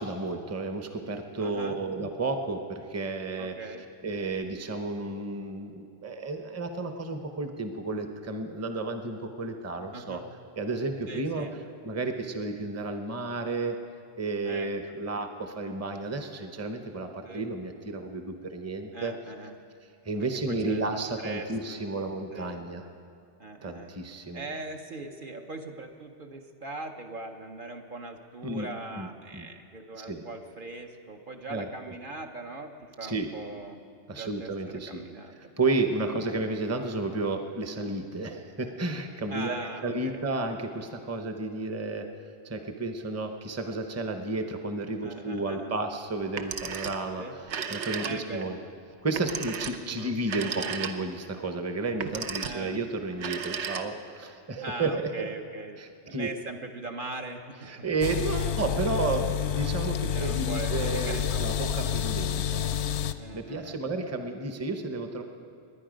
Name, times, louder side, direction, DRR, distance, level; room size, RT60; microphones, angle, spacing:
voice 1, 0.0-3.5 4.0-10.2 10.6-11.5 11.8-13.8 14.2-19.1 20.0-22.8 23.6-24.4 28.4-28.7 29.0-29.1 29.3-29.5 30.0-30.2 31.5-31.7 33.0-33.3 34.1-35.0 35.6-42.1 42.4-47.2 47.7-48.6 49.0-55.1 55.8-56.3 57.7-62.7 63.3-65.2, right 3 dB, 15° right, 6 dB, 0.7 m, -32 dB
voice 2, 1.4-1.8 3.4-3.9 9.9-10.3 11.1-11.5 14.4-15.0 17.2-17.5 18.9-19.6 20.5-21.9 22.3-22.6 23.4-23.9 24.3-33.8 34.1-35.4 39.3-40.2 45.0-45.8 47.2-47.4 48.0-48.7 49.7-50.1 52.4-52.8 54.6-57.9 59.5-59.7 60.1-61.5 62.2-62.4 63.2-63.8, right 2 dB, 50° right, 3 dB, 0.9 m, -41 dB
Telephone, 46.2-47.1 47.4-48.5 49.1-51.2 51.9-52.7 53.1-54.2, right 7 dB, 85° right, 1.0 m, -35 dB
sound 1, 58.0-63.1, left 9 dB, 75° left, 0.9 m, -29 dB
21.0 x 10.0 x 5.1 m, 2.4 s
omnidirectional pair, 1.1 m